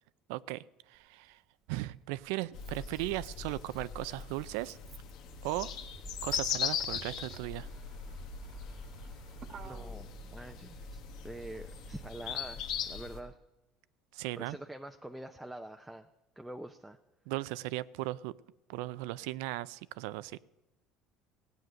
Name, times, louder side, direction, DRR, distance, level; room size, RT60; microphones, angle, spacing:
voice 1, 0.3-1.4 1.7-4.8 5.4-5.7 6.2-7.7 14.1-14.6 17.3-18.4 18.7-20.4, right 18 dB, 85° right, 18 dB, 0.4 m, -37 dB
Motor vehicle (road), 0.9-1.0 2.2-13.3, right 6 dB, 35° right, 1.3 m, -52 dB
sound 1, 2.5-13.2, left 8 dB, 65° left, 1.3 m, -40 dB
voice 2, 9.6-13.4 14.4-16.1 16.4-17.0, right 1 dB, 5° right, 5 dB, 0.6 m, -45 dB
16.0 x 9.2 x 6.2 m, 1.0 s
cardioid pair, 145°, 0 cm